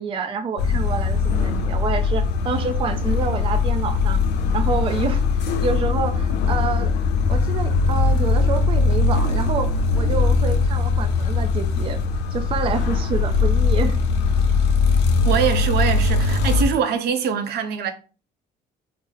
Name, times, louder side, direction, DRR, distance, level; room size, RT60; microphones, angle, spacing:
voice 1, 0.0-4.2 4.5-6.9 7.3-12.0 12.3-14.0, right 5 dB, 30° right, 0.4 m, -28 dB
sound 1, 0.6-16.6, left 4 dB, 80° left, 0.5 m, -20 dB
voice 2, 15.2-17.9, right 7 dB, 70° right, 0.6 m, -23 dB
3.7 x 2.0 x 3.9 m
cardioid pair, 110°, 17 cm